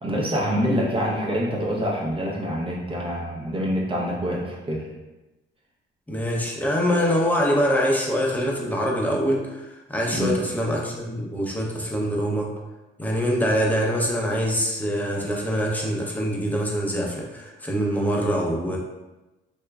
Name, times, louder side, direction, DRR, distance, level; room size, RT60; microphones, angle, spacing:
voice 1, 0.0-5.0 10.1-10.4, equal, 25° right, -3 dB, 0.7 m, -26 dB
voice 2, 6.1-12.5 13.0-18.8, equal, 10° left, -2 dB, 0.7 m, -24 dB
3.4 x 2.9 x 2.3 m, 1.0 s
cardioid pair, 90°, 20 cm